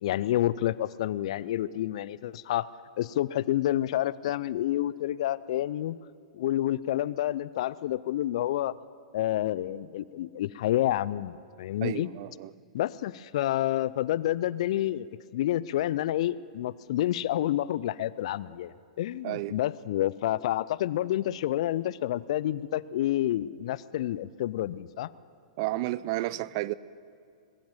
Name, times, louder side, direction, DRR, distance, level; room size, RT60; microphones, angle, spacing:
voice 1, 0.0-2.7 3.0-6.0 6.3-8.7 9.1-12.1 12.7-15.1 15.3-25.1, left 13 dB, 60° left, 0.4 m, -29 dB
voice 2, 11.8-12.5 19.2-19.5 25.6-26.7, right 17 dB, 45° right, 0.4 m, -31 dB
20.5 x 8.6 x 7.4 m
hypercardioid pair, 110°, 4 cm